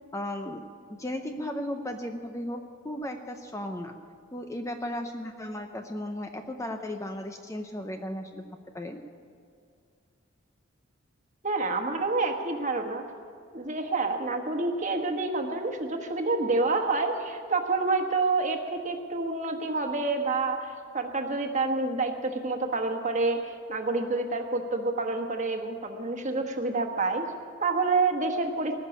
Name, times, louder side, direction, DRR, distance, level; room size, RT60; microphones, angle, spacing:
voice 1, 0.1-0.7 1.0-3.9 4.3-8.4 8.7-9.0, left 1 dB, 15° left, 5 dB, 0.6 m, -35 dB
voice 2, 11.4-13.0 13.5-27.2 27.6-28.7, right 3 dB, 35° right, 4 dB, 1.3 m, -28 dB
19.5 x 6.6 x 9.8 m, 2.3 s
head